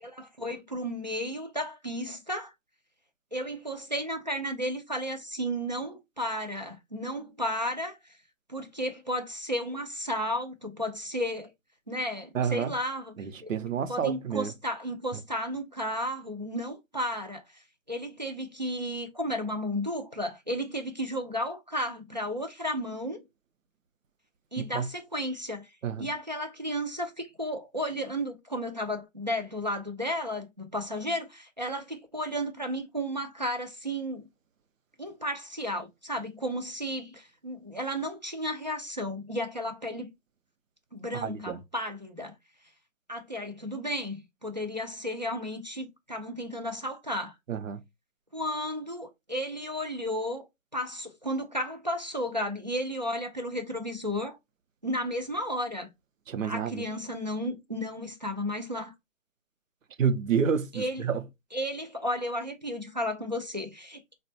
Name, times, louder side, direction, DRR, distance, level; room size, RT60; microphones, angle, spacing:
voice 1, 0.0-2.5 3.3-8.0 8.5-11.5 11.9-13.5 13.9-17.4 17.9-23.3 24.5-25.7 26.0-34.3 35.0-40.1 40.9-42.3 43.1-47.3 48.3-50.5 50.7-54.4 54.8-55.9 56.4-58.9 60.7-61.0 61.5-64.0, equal, 35° right, 0.4 m, -33 dB
voice 2, 12.3-12.7 13.2-14.5 24.6-24.9 25.8-26.1 41.1-41.6 47.5-47.8 56.3-56.8 60.0-61.2, right 7 dB, 80° right, 0.6 m, -29 dB
4.0 x 2.2 x 2.5 m
hypercardioid pair, 170°, 39 cm